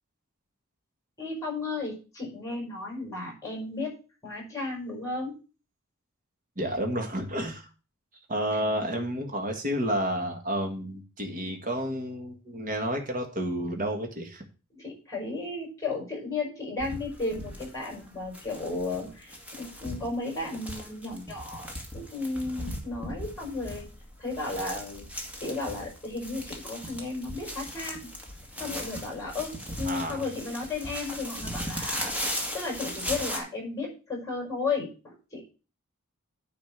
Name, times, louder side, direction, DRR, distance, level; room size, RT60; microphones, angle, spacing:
voice 1, 1.2-3.9 4.2-5.3 8.5-8.6 14.7-21.7 21.9-23.9 24.2-25.1 25.4-28.1 28.6-32.1 32.5-35.4, left 3 dB, 15° left, -1 dB, 5.4 m, -34 dB
voice 2, 6.6-7.7 8.3-14.4 29.8-30.3, equal, 40° right, 3 dB, 1.8 m, -30 dB
sound 1, 16.8-33.4, equal, 5° right, 2.0 m, -38 dB
9.6 x 4.3 x 7.3 m, 0.34 s
head